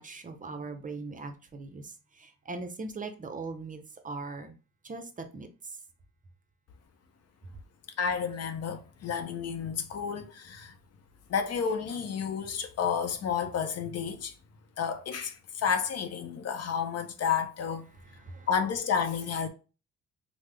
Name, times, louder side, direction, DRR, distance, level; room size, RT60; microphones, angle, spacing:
voice 1, 0.0-1.8 2.5-4.5 4.8-5.0 5.3-5.5 18.3-18.5, right 3 dB, 25° right, 0.6 m, -39 dB
voice 2, 8.0-10.7 11.3-14.3 14.8-17.9 18.5-19.5, left 7 dB, 55° left, 0.6 m, -31 dB
3.3 x 2.1 x 3.3 m
cardioid pair, 90°, 30 cm